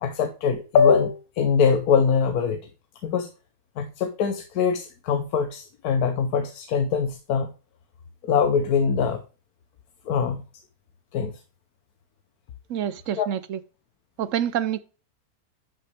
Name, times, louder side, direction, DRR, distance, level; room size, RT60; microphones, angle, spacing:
voice 1, 0.0-2.6 3.0-3.3 3.8-7.5 8.2-9.2 10.1-10.4 11.1-11.3 13.2-13.3, left 6 dB, 80° left, 1.3 m, -22 dB
voice 2, 12.7-13.6 14.2-14.8, right 10 dB, 65° right, 0.9 m, -27 dB
11.0 x 5.8 x 3.3 m
omnidirectional pair, 1.6 m